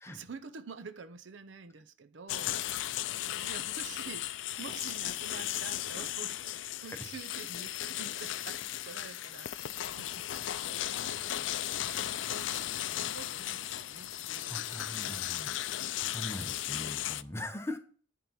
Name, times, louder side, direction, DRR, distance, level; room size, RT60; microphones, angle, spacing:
voice 1, 0.1-2.8 3.2-15.0 15.3-15.7, right 5 dB, 75° right, 0.6 m, -49 dB
sound 1, 2.3-17.2, left 12 dB, 75° left, 0.4 m, -36 dB
voice 2, 14.5-15.5 16.1-17.8, left 1 dB, 15° left, 1.0 m, -41 dB
10.0 x 3.8 x 5.8 m
head